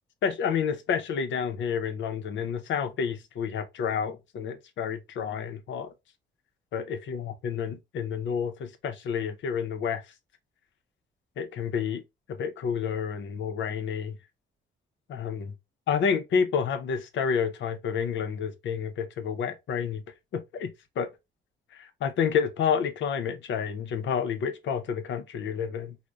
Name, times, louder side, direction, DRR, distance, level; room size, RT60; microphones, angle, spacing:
voice 1, 0.2-5.9 6.7-10.0 11.4-12.0 12.3-14.2 15.1-15.5 15.9-20.0 20.3-21.1 21.7-26.0, left 7 dB, 70° left, 0.6 m, -29 dB
3.4 x 2.1 x 2.4 m
cardioid pair, 90°, 20 cm